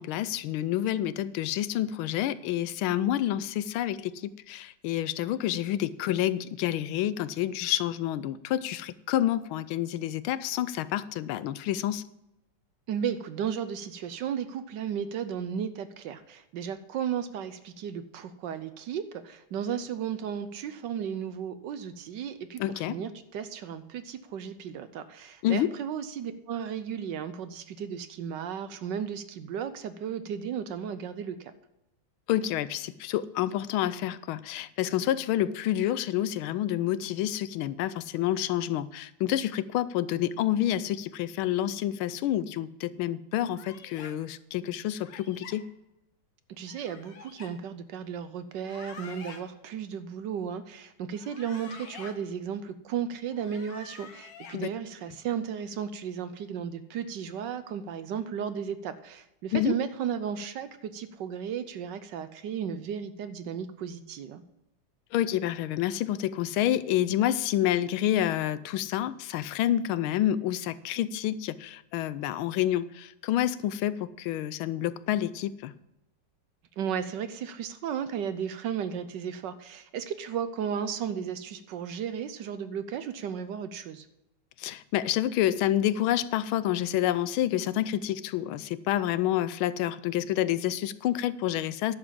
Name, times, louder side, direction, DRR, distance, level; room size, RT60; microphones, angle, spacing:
voice 1, 0.0-12.0 22.6-23.0 25.4-25.7 32.3-45.6 54.5-54.7 59.5-59.8 65.1-75.7 84.6-91.9, left 12 dB, 85° left, 16 dB, 1.4 m, -28 dB
voice 2, 12.9-31.5 46.6-64.4 76.8-84.1, right 8 dB, 70° right, 12 dB, 1.2 m, -34 dB
sound 1, 43.5-44.1 45.0-45.6 46.7-47.5 48.5-49.4 51.1-52.1 53.3-54.6, left 5 dB, 65° left, 1.9 m, -47 dB
11.0 x 7.3 x 7.5 m, 0.88 s
omnidirectional pair, 2.2 m